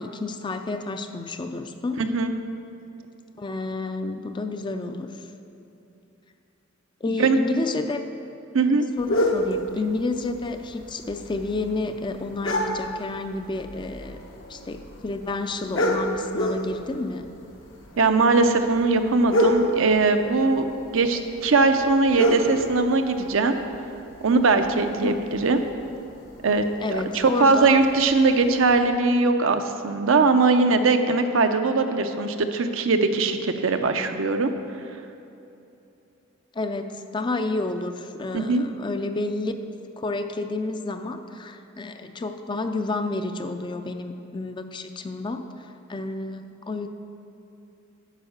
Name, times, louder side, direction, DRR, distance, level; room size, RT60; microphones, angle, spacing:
voice 1, 0.0-2.0 3.4-5.1 7.0-8.1 8.7-14.2 14.5-17.3 25.0-25.2 26.8-27.8 36.6-39.5 40.0-46.9, left 3 dB, 25° left, 7 dB, 0.4 m, -30 dB
voice 2, 2.0-2.3 7.1-7.4 8.5-8.9 18.0-20.6 20.9-23.6 24.2-25.6 26.4-26.6 26.9-34.5 38.3-38.6, right 3 dB, 75° right, 7 dB, 0.6 m, -20 dB
sound 1, 9.0-28.8, equal, 70° left, 1.0 m, -31 dB
9.0 x 5.6 x 6.5 m, 2.8 s
head